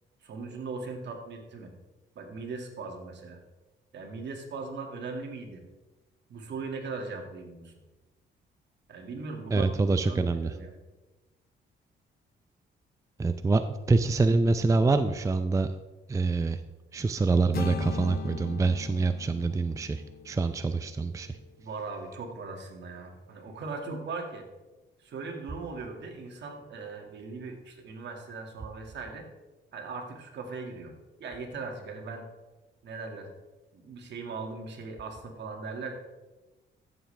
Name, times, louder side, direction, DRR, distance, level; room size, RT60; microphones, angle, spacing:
voice 1, 0.2-1.7 2.2-3.4 3.9-5.6 6.3-7.7 8.9-10.8 21.6-24.5 25.0-29.2 29.7-30.9 31.2-32.3 32.8-33.3 33.7-35.9, right 4 dB, 60° right, 3 dB, 2.0 m, -39 dB
voice 2, 9.5-10.5 13.2-15.7 16.1-16.6 16.9-21.4, right 3 dB, 15° right, 9 dB, 0.4 m, -26 dB
sound 1, 17.5-21.5, left 8 dB, 50° left, 0.6 m, -40 dB
14.0 x 7.4 x 3.3 m, 1.1 s
cardioid pair, 90°, 20 cm